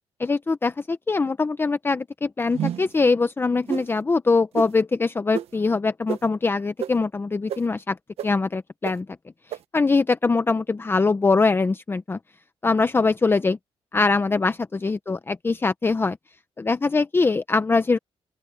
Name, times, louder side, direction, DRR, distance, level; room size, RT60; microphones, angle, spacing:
voice 1, 0.2-8.0 8.2-9.1 9.7-12.2 12.6-13.6 13.9-16.2 16.6-18.0, left 3 dB, 20° left, 0.8 m, -22 dB
sound 1, 2.5-3.0 3.7-3.9 4.5-4.7 5.3-5.5 6.1-6.2 6.8-6.9 7.5-7.6 8.2-8.3 8.8-8.9 9.5-9.6, right 10 dB, 75° right, 1.3 m, -28 dB
open air
cardioid pair, 105°, 10 cm